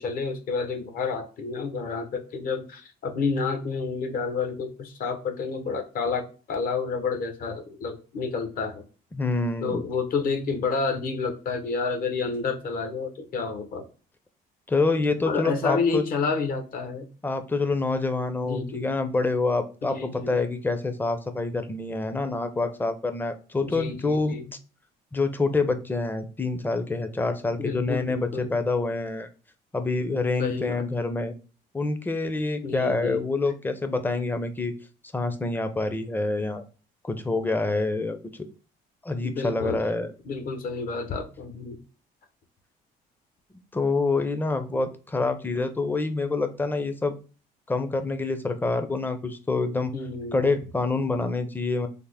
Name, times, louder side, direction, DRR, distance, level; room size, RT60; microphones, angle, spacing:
voice 1, 0.0-8.8 9.6-13.9 15.2-17.1 18.4-18.8 19.8-20.4 23.6-24.5 27.6-28.6 30.4-30.8 32.6-33.2 39.2-39.8 40.2-41.8 44.7-44.8 49.9-50.5, left 4 dB, 55° left, 6 dB, 0.8 m, -30 dB
voice 2, 9.1-9.8 14.7-16.0 17.2-24.4 25.1-29.3 29.7-31.3 31.7-34.7 35.1-36.6 37.0-38.5 39.0-40.1 43.7-47.1 47.7-49.9 50.3-51.9, left 3 dB, 10° left, 8 dB, 0.4 m, -26 dB
3.4 x 2.0 x 3.3 m, 0.36 s
cardioid pair, 110°, 17 cm